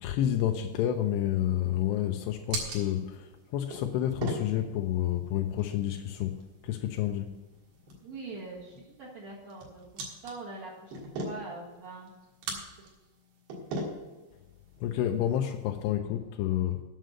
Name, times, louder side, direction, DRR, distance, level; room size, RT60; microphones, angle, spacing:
voice 1, 0.0-3.2 3.5-6.4 6.7-7.3 14.8-16.8, left 11 dB, 85° left, 2.8 m, -29 dB
sound 1, 0.5-15.9, right 2 dB, 70° right, 3.5 m, -42 dB
voice 2, 8.0-12.1 12.5-12.6, right 3 dB, 55° right, 2.4 m, -43 dB
8.9 x 6.5 x 7.7 m
omnidirectional pair, 4.8 m